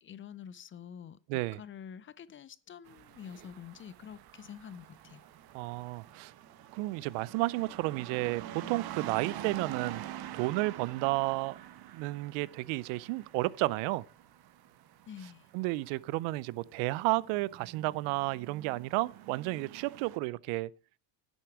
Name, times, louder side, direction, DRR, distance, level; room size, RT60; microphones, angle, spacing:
voice 1, 0.0-1.2 1.5-5.2 15.1-15.5, left 8 dB, 25° left, 0.5 m, -47 dB
voice 2, 1.3-1.6 5.5-6.3 6.7-10.0 10.3-11.6 11.9-14.0 15.5-20.7, right 20 dB, 80° right, 0.6 m, -32 dB
sound 1, 2.9-20.2, right 12 dB, 50° right, 1.1 m, -47 dB
11.0 x 8.1 x 4.6 m
cardioid pair, 120°, 46 cm